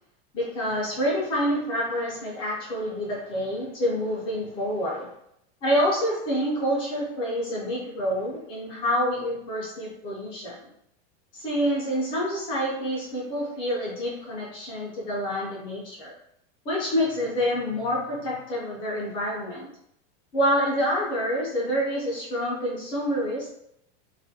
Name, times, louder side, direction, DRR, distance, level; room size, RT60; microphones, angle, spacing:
voice 1, 0.3-5.1 5.6-10.6 11.3-16.1 16.7-19.7 20.3-23.5, equal, 15° left, -4 dB, 0.3 m, -27 dB
2.4 x 2.1 x 2.6 m, 0.76 s
supercardioid pair, 165°, 33 cm